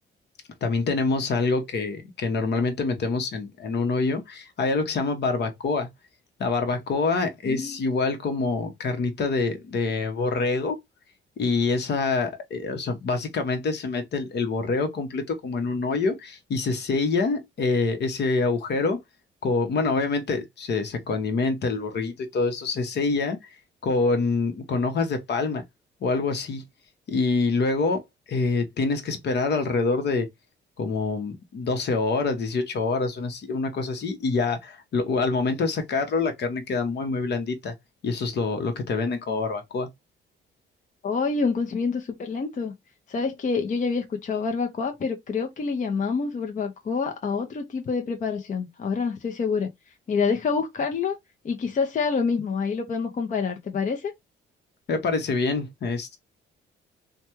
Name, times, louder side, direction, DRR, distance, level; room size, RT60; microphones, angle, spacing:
voice 1, 0.6-5.9 6.4-10.8 11.4-19.0 19.4-23.5 23.8-25.6 26.0-26.6 27.1-28.0 28.3-30.3 30.8-37.7 38.0-39.9 54.9-56.2, left 3 dB, 60° left, 1.0 m, -26 dB
voice 2, 7.4-7.8 41.0-42.7 43.1-49.7 50.1-51.2 51.4-54.1, left 5 dB, 40° left, 0.7 m, -27 dB
3.3 x 2.3 x 2.9 m
cardioid pair, 90°, 20 cm